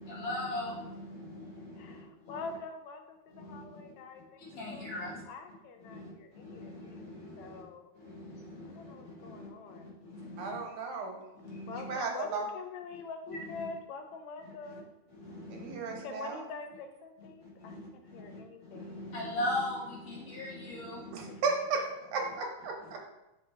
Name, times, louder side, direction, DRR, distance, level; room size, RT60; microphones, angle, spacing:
voice 1, 0.0-2.3 3.3-3.8 4.4-5.2 5.8-7.6 8.0-10.6 11.4-11.9 13.3-13.4 15.1-16.0 17.4-17.8 18.1-21.4, left 1 dB, 50° left, -5 dB, 2.0 m, -40 dB
voice 2, 1.8-4.4 4.7-7.9 8.7-10.0 11.7-14.9 16.0-19.1 21.3-21.4, left 4 dB, 80° left, 5 dB, 1.7 m, -45 dB
voice 3, 10.4-11.2 11.7-12.5 15.5-16.4 21.1-21.8 22.1-23.0, right 4 dB, 85° right, 2 dB, 2.5 m, -34 dB
6.1 x 5.0 x 3.3 m, 0.93 s
omnidirectional pair, 3.4 m